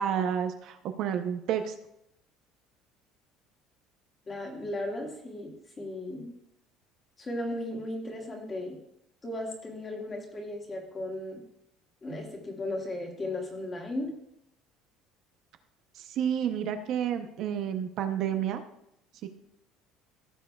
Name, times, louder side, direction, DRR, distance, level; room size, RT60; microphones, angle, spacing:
voice 1, 0.0-1.7 16.0-18.6 19.2-19.3, right 9 dB, 50° right, 7 dB, 0.6 m, -30 dB
voice 2, 4.3-6.3 7.2-8.8 9.2-11.4 12.0-14.2, left 1 dB, 20° left, 1 dB, 1.8 m, -36 dB
15.5 x 7.3 x 2.3 m, 0.80 s
cardioid pair, 155°, 0 cm